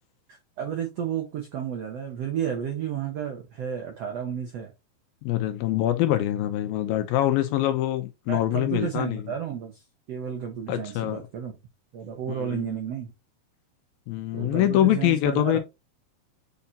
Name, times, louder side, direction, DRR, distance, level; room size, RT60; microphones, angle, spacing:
voice 1, 0.3-4.7 8.3-9.8 10.1-11.5 11.9-13.1 14.3-15.6, right 8 dB, 80° right, 1.4 m, -32 dB
voice 2, 5.2-9.2 10.7-11.2 12.4-12.8 14.1-15.6, left 13 dB, 75° left, 2.3 m, -24 dB
7.1 x 4.8 x 2.8 m
omnidirectional pair, 4.6 m